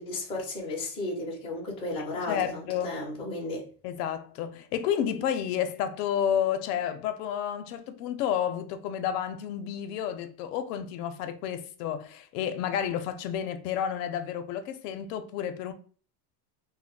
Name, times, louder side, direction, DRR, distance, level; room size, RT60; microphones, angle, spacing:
voice 1, 0.0-3.7, left 2 dB, 15° left, 0.4 m, -34 dB
voice 2, 2.3-3.0 3.8-15.7, left 9 dB, 75° left, 0.6 m, -31 dB
2.1 x 2.0 x 3.6 m
supercardioid pair, 155°, 48 cm